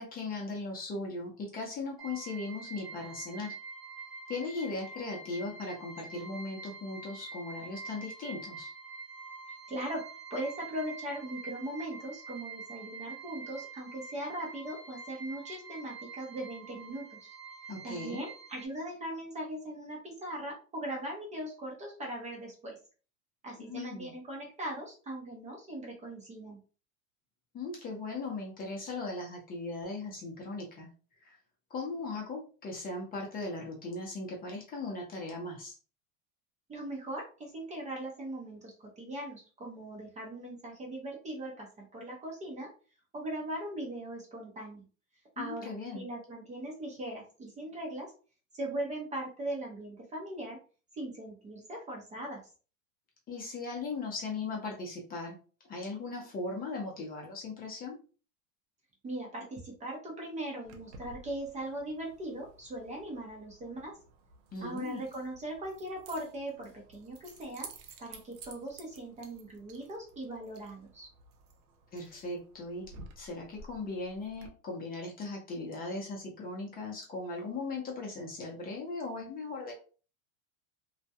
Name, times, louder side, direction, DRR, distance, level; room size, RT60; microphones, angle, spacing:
voice 1, 0.0-3.5 4.3-8.7 17.7-18.3 23.6-24.1 27.5-30.9 31.2-31.4 31.7-35.8 45.4-46.1 53.3-55.4 55.7-58.0 64.5-65.0 71.9-72.9 73.2-79.7, left 3 dB, 20° left, -1 dB, 0.7 m, -38 dB
sound 1, 2.0-18.7, right 4 dB, ahead, 1.1 m, -46 dB
voice 2, 9.7-10.0 10.3-17.3 17.8-22.8 23.4-26.6 36.7-42.7 43.1-44.8 45.4-48.1 48.5-50.6 50.9-52.4 59.0-63.9 64.6-67.7 68.0-71.1, right 1 dB, 15° right, -1 dB, 0.6 m, -39 dB
Keys jangling, 60.6-74.5, right 4 dB, 60° right, 0.7 m, -53 dB
2.4 x 2.1 x 2.7 m, 0.37 s
supercardioid pair, 125°, 41 cm